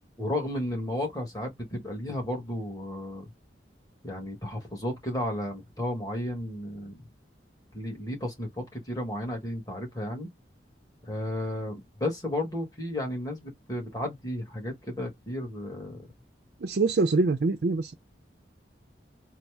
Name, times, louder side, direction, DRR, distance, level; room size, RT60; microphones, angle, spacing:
voice 1, 0.2-3.3 4.0-7.1 7.7-10.3 11.0-16.1, left 1 dB, 20° left, 1.5 m, -33 dB
voice 2, 16.6-17.9, right 3 dB, 65° right, 0.5 m, -24 dB
4.1 x 2.0 x 3.4 m
head